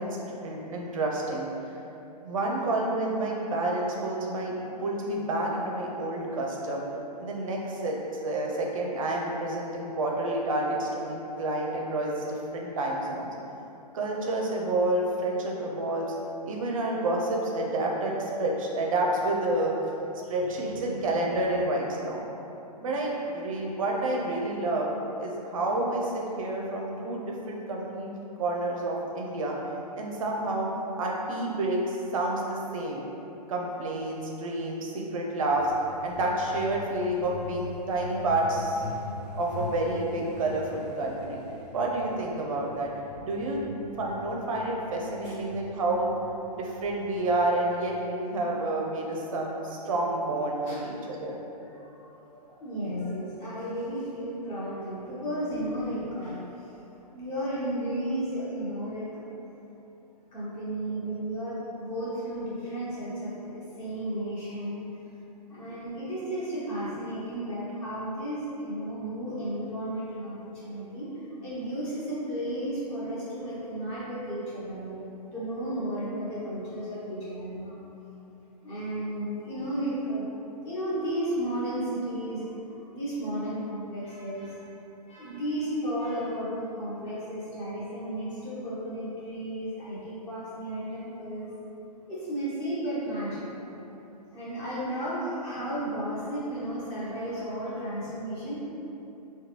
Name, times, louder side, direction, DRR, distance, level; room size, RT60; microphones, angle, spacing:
voice 1, 0.0-1.8 2.2-6.9 7.2-13.3 13.9-16.1 16.5-19.8 20.2-22.2 22.8-24.9 25.2-28.1 28.4-29.6 30.0-30.7 31.0-33.0 33.5-35.7 36.0-38.8 39.4-41.4 41.7-42.9 43.2-46.1 46.6-51.4, right 2 dB, 55° right, -1 dB, 0.5 m, -29 dB
Truck, 35.6-47.9, left 3 dB, 70° left, 0.4 m, -43 dB
voice 2, 50.6-51.4 51.7-56.8 57.1-59.2 60.3-64.9 65.5-77.8 78.6-84.6 85.1-91.6 92.1-93.6 94.3-98.6, right 1 dB, 25° left, -10 dB, 1.1 m, -33 dB
3.7 x 2.2 x 3.0 m, 3.0 s
figure-of-eight pair, 120°, 21 cm